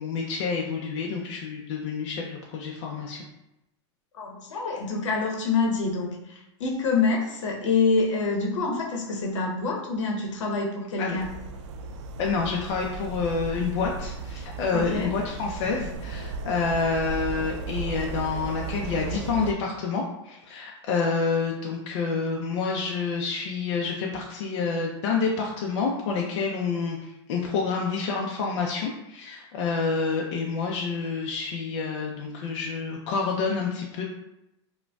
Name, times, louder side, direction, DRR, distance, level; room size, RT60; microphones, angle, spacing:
voice 1, 0.0-3.2 11.0-11.2 12.2-34.0, left 4 dB, 60° left, -1 dB, 0.5 m, -28 dB
voice 2, 4.1-11.4 14.7-15.2, left 4 dB, 80° left, 0 dB, 0.9 m, -26 dB
sound 1, 11.2-19.5, right 4 dB, 70° right, 0.4 m, -35 dB
4.8 x 2.2 x 2.3 m, 0.88 s
hypercardioid pair, 115°, 15 cm